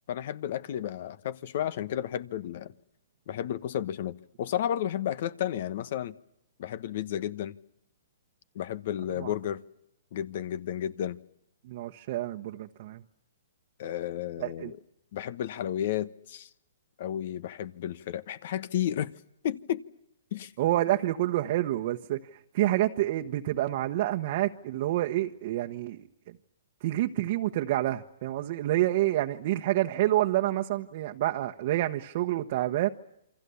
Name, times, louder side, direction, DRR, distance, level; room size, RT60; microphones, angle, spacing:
voice 1, 0.1-2.7 3.3-6.1 6.6-7.6 8.5-9.6 10.1-11.2 13.8-14.8 15.1-16.5 17.0-19.1 19.4-19.8 20.3-20.5, left 10 dB, 55° left, 1.2 m, -32 dB
voice 2, 11.6-13.0 14.4-14.7 20.6-26.4 26.8-32.9, right 15 dB, 45° right, 1.2 m, -28 dB
28.5 x 24.5 x 7.1 m
hypercardioid pair, 145°, 0 cm